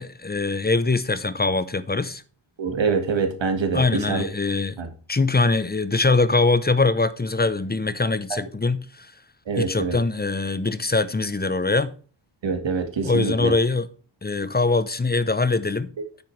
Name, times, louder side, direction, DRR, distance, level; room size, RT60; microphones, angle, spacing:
voice 1, 0.0-2.2 3.7-4.7 5.1-9.1 9.6-11.9 13.0-13.9 14.2-15.9, left 3 dB, 20° left, 0.8 m, -22 dB
voice 2, 2.6-4.3 4.8-4.9 9.5-10.0 12.4-13.5, right 5 dB, 70° right, 2.0 m, -25 dB
9.6 x 7.6 x 3.3 m
wide cardioid pair, 110°, 46 cm